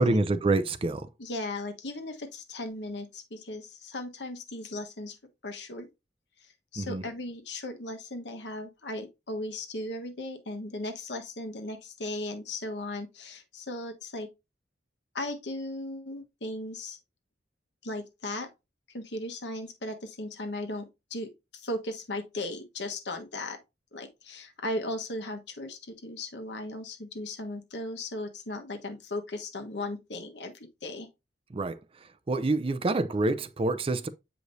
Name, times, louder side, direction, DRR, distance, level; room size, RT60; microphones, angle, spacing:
voice 1, 0.0-1.1 6.8-7.0 31.5-31.8 32.3-34.1, right 2 dB, 30° right, 0.5 m, -26 dB
voice 2, 1.2-5.2 5.4-5.9 6.4-14.3 15.1-17.0 17.8-18.5 18.9-23.6 23.9-31.1, left 1 dB, 70° left, 1.2 m, -37 dB
8.0 x 4.9 x 2.7 m
head